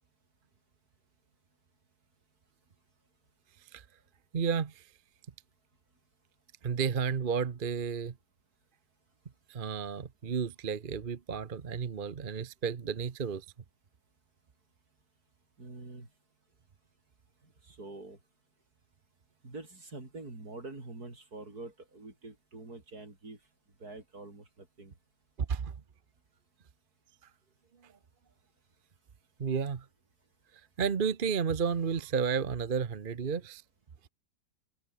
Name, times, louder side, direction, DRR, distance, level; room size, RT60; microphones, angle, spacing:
voice 1, 4.3-4.9 6.6-8.1 9.5-13.5 25.5-25.7 27.8-27.9 29.4-29.9 30.8-33.6, right 6 dB, 35° right, 0.9 m, -32 dB
voice 2, 15.6-16.1 17.4-18.2 19.4-23.4 23.8-24.9, right 2 dB, 55° right, 5.8 m, -46 dB
omnidirectional pair, 1.9 m